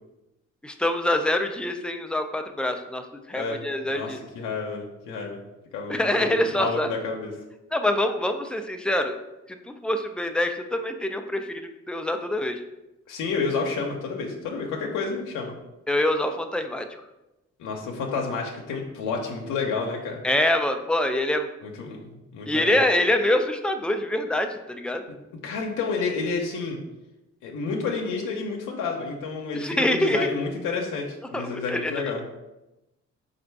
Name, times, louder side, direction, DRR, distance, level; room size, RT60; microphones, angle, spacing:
voice 1, 0.6-4.2 5.9-6.9 7.7-9.2 9.5-12.6 15.9-16.9 20.2-21.5 22.5-25.0 29.6-30.3 31.3-32.0, left 1 dB, 5° left, 6 dB, 0.3 m, -25 dB
voice 2, 3.3-5.4 5.7-7.3 13.1-15.5 17.6-20.2 21.6-22.8 25.4-26.8 27.4-32.2, left 4 dB, 85° left, 0 dB, 0.7 m, -30 dB
4.2 x 2.5 x 4.6 m, 0.97 s
cardioid pair, 90°, 30 cm